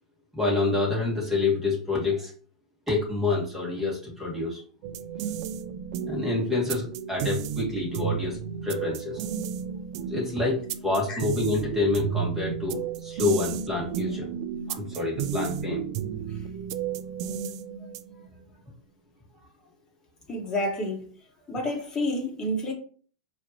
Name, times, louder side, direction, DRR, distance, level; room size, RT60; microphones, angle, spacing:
voice 1, 0.3-2.3 2.9-4.6 6.1-8.4 8.6-9.2 10.1-14.3 14.7-15.8, left 3 dB, 10° right, 2.2 m, -27 dB
sound 1, 4.8-18.3, right 8 dB, 55° right, 0.4 m, -33 dB
voice 2, 20.3-21.1 21.5-22.7, left 1 dB, 20° left, 1.6 m, -29 dB
4.9 x 3.0 x 2.9 m
hypercardioid pair, 115°, 4 cm